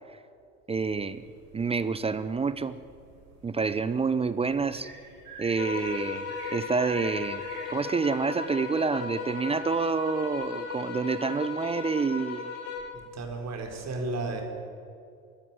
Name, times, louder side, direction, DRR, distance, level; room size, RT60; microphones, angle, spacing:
voice 1, 0.7-1.2 1.5-2.8 3.4-4.9 5.4-6.3 6.5-12.5, right 4 dB, 15° right, 14 dB, 0.6 m, -28 dB
sound 1, 0.7-7.7, right 3 dB, 75° right, 5.1 m, -48 dB
sound 2, 5.6-13.0, left 6 dB, 60° left, 4.0 m, -36 dB
voice 2, 12.9-14.4, right 2 dB, 35° right, 3 dB, 4.4 m, -33 dB
23.0 x 13.0 x 9.9 m, 2.4 s
figure-of-eight pair, 70°, 46 cm